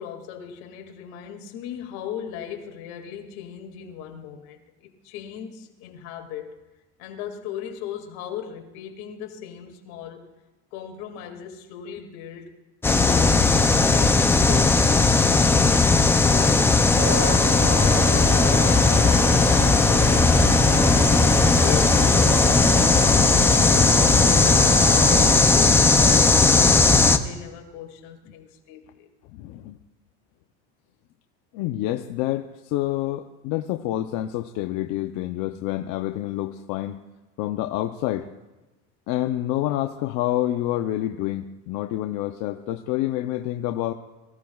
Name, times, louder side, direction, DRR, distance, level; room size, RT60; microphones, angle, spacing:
voice 1, 0.0-6.6 7.0-10.2 10.7-12.5 12.9-20.9 21.5-26.8 27.2-29.1, left 9 dB, 75° left, 4 dB, 2.2 m, -38 dB
sound 1, 12.8-27.2, left 3 dB, 5° left, 0.4 m, -17 dB
Wind instrument woodwind instrument, 17.0-25.5, right 3 dB, 65° right, 2.5 m, -32 dB
voice 2, 29.3-29.8 31.5-37.0 37.4-38.3 39.1-43.9, left 14 dB, 55° left, 7 dB, 0.6 m, -28 dB
23.5 x 15.5 x 2.3 m, 1.1 s
cardioid pair, 155°, 33 cm